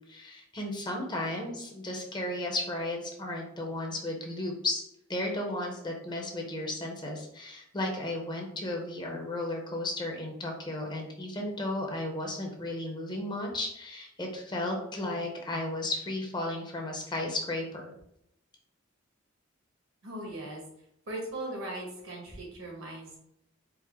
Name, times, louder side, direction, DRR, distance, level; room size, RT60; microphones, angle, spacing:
voice 1, 0.1-4.8 5.1-17.9, left 1 dB, 20° left, 1 dB, 0.6 m, -34 dB
voice 2, 20.0-20.6 21.1-23.2, right 1 dB, 85° right, -2 dB, 1.5 m, -38 dB
4.5 x 2.0 x 3.5 m, 0.76 s
head